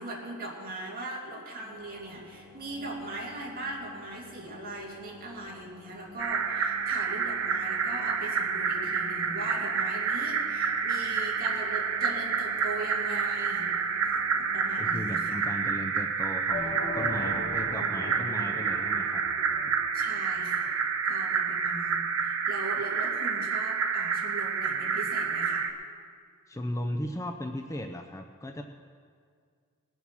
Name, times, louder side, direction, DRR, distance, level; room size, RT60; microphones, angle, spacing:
voice 1, 0.0-13.7 14.0-15.4 19.9-20.8 21.0-25.6, right 2 dB, 40° right, -3 dB, 2.7 m, -40 dB
sound 1, 1.5-15.1, left 3 dB, 10° right, 4.0 m, -51 dB
sound 2, 6.2-25.7, right 6 dB, 60° right, 0.9 m, -29 dB
voice 2, 14.8-19.2 19.7-19.8 26.5-28.6, left 1 dB, 15° left, 4 dB, 0.5 m, -36 dB
sound 3, 16.5-20.5, left 2 dB, 50° left, 3.5 m, -39 dB
20.0 x 7.1 x 6.2 m, 2.1 s
head